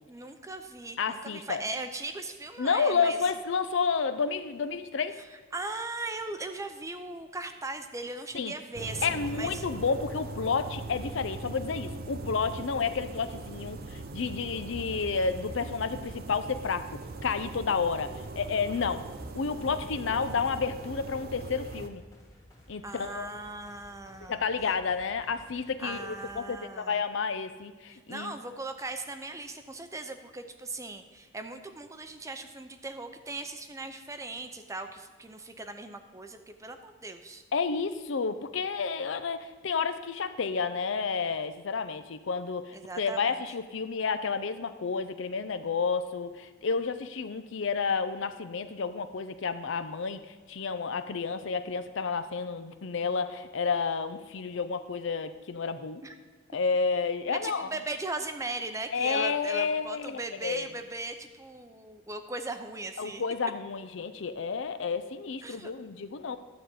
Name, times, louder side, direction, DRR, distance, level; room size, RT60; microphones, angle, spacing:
voice 1, 0.1-3.2 5.5-9.6 18.8-19.7 22.8-24.4 25.8-27.0 27.9-37.4 42.7-43.4 56.0-56.1 57.3-63.2 65.4-65.7, right 2 dB, 15° right, 7 dB, 0.6 m, -39 dB
voice 2, 1.0-1.6 2.6-5.2 8.3-8.5 9.0-19.0 19.3-22.0 22.7-23.4 24.3-28.3 37.5-56.0 56.5-57.7 58.9-60.7 63.0-66.4, left 5 dB, 65° left, 11 dB, 0.6 m, -30 dB
sound 1, 8.7-21.9, right 3 dB, 50° right, 0.6 m, -40 dB
sound 2, 20.2-26.4, equal, 15° left, 1.6 m, -55 dB
12.5 x 4.1 x 7.8 m, 1.4 s
head